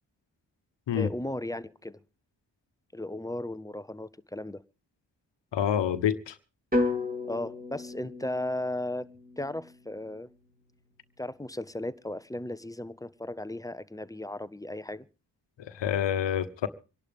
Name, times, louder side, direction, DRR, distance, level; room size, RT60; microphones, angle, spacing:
voice 1, 0.9-2.0 2.9-4.6 7.3-9.1 9.4-10.3 11.2-15.1, left 1 dB, 10° left, 0.8 m, -36 dB
voice 2, 5.5-6.3 15.6-16.7, left 9 dB, 75° left, 1.2 m, -27 dB
sound 1, 6.7-10.8, left 2 dB, 20° right, 3.9 m, -34 dB
25.5 x 11.5 x 3.6 m
supercardioid pair, 40°, 43 cm